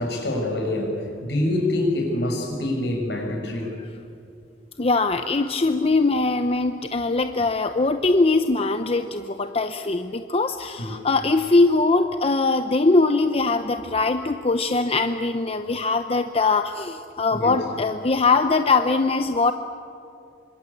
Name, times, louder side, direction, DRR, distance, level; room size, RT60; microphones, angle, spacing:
voice 1, 0.0-3.7 10.8-10.9 17.3-17.6, left 1 dB, 70° left, 2 dB, 6.7 m, -26 dB
voice 2, 4.8-19.5, left 3 dB, 35° left, 8 dB, 0.8 m, -21 dB
27.0 x 25.5 x 8.5 m, 2.5 s
head